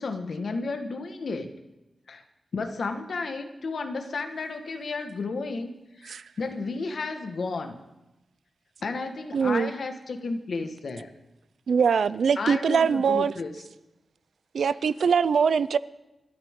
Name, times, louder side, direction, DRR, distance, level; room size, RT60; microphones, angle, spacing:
voice 1, 0.0-1.5 2.1-2.2 2.5-7.8 8.8-11.1 12.4-13.5, left 3 dB, 65° left, 1.6 m, -32 dB
voice 2, 9.3-9.7 11.7-13.3 14.5-15.8, right 6 dB, 90° right, 0.5 m, -22 dB
28.5 x 13.0 x 3.8 m
wide cardioid pair, 125°, 0 cm